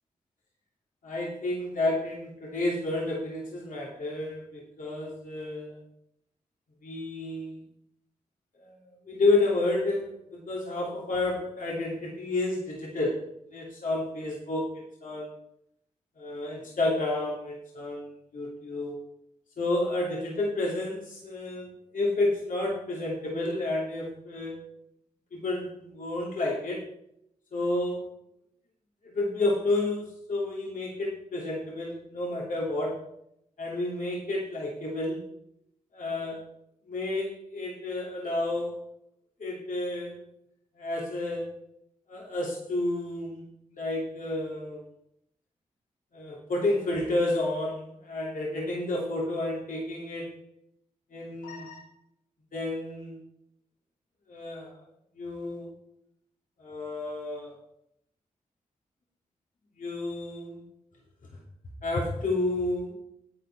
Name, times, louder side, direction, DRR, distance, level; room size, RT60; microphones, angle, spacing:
voice 1, 1.0-5.8 6.8-7.6 8.6-15.3 16.2-19.0 19.6-24.6 25.3-26.9 27.5-28.1 29.0-33.1 33.6-35.3 35.9-36.4 36.9-38.8 39.4-40.2 40.8-41.6 42.1-43.4 43.7-44.8 46.1-50.4 51.1-51.8 52.5-53.2 54.3-54.8 55.2-55.7 56.6-57.6 59.8-60.6 61.8-63.0, left 2 dB, 65° left, -3 dB, 2.6 m, -30 dB
9.7 x 8.6 x 4.5 m, 0.77 s
supercardioid pair, 40°, 15 cm